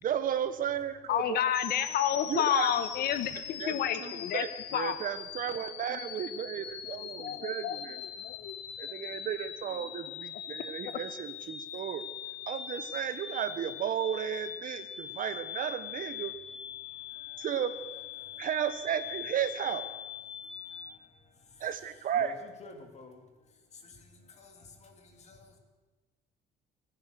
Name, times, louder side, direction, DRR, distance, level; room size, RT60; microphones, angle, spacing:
voice 1, 0.0-1.5 2.3-2.7 3.3-8.0 8.8-12.1 12.5-16.3 17.4-17.8 18.4-19.9 21.6-22.4, right 9 dB, 55° right, 12 dB, 1.2 m, -34 dB
voice 2, 1.1-4.4 4.7-5.0 6.8-6.9 7.2-7.8 8.2-8.5 9.0-9.1, left 10 dB, 65° left, 12 dB, 1.3 m, -30 dB
sound 1, 1.5-20.9, left 9 dB, 85° left, 1.5 m, -42 dB
voice 3, 22.6-23.2 23.8-25.6, left 3 dB, 40° left, 4 dB, 2.9 m, -51 dB
23.0 x 9.7 x 6.5 m, 1.2 s
cardioid pair, 110°, 17 cm